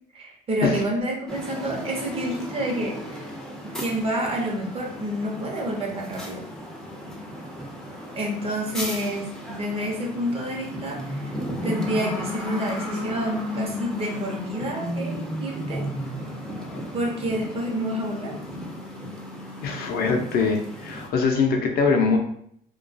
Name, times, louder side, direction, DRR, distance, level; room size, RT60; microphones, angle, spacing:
voice 1, 0.1-3.3 3.6-6.4 8.2-11.3 11.6-15.8 16.9-18.3, equal, 35° right, -1 dB, 0.7 m, -29 dB
sound 1, 1.3-21.1, left 1 dB, 5° left, 0.5 m, -34 dB
voice 2, 19.6-22.2, left 4 dB, 65° left, 2 dB, 0.5 m, -22 dB
2.3 x 2.2 x 2.5 m, 0.67 s
cardioid pair, 110°, 17 cm